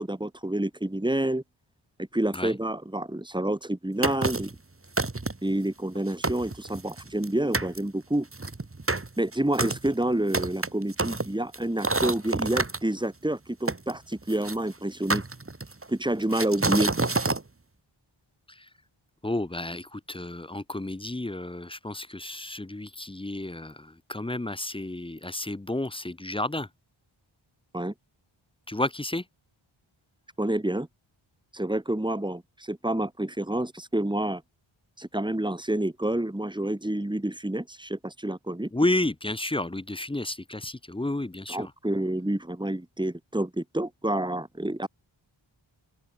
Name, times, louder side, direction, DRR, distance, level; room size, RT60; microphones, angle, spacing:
voice 1, 0.0-1.4 2.1-4.5 5.4-8.3 9.2-15.2 15.9-16.9 27.7-27.9 30.4-30.9 31.5-34.4 35.0-38.7 41.5-44.9, right 1 dB, 10° right, 2.8 m, -28 dB
sound 1, 4.0-4.6 5.0-5.5 5.9-6.0 6.2-7.3 7.5-7.8 8.3-12.8 13.7-14.6 15.1-15.8 16.3-17.4, right 3 dB, 25° right, 2.2 m, -28 dB
voice 2, 19.2-26.7 28.7-29.2 38.7-41.7, left 1 dB, 10° left, 0.6 m, -31 dB
open air
wide cardioid pair, 70°, 49 cm